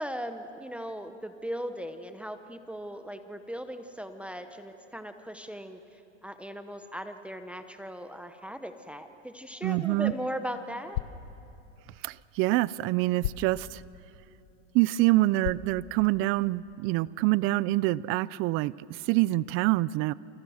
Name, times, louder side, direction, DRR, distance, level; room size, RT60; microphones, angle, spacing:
voice 1, 0.0-11.0, equal, 5° right, 8 dB, 0.9 m, -38 dB
voice 2, 9.6-10.1 12.0-13.8 14.7-20.1, right 18 dB, 35° right, 20 dB, 0.5 m, -26 dB
sound 1, 9.7-16.6, left 11 dB, 85° left, 1.1 m, -41 dB
29.0 x 28.5 x 6.4 m, 2.8 s
supercardioid pair, 135°, 36 cm